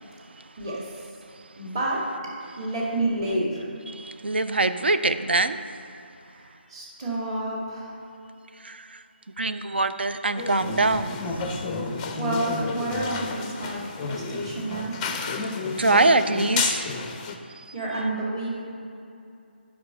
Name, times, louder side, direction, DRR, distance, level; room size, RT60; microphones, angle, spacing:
voice 1, 1.6-2.0 2.6-3.7 6.3-8.0 12.2-14.9 17.7-18.5, right 2 dB, 30° right, -4 dB, 2.1 m, -29 dB
voice 2, 3.9-5.6 8.6-9.0 9.4-11.6 15.8-16.8, right 2 dB, 65° right, 10 dB, 0.5 m, -24 dB
sound 1, 10.4-17.4, left 4 dB, 15° left, 0.5 m, -31 dB
9.6 x 5.5 x 6.7 m, 2.7 s
figure-of-eight pair, 155°, 6 cm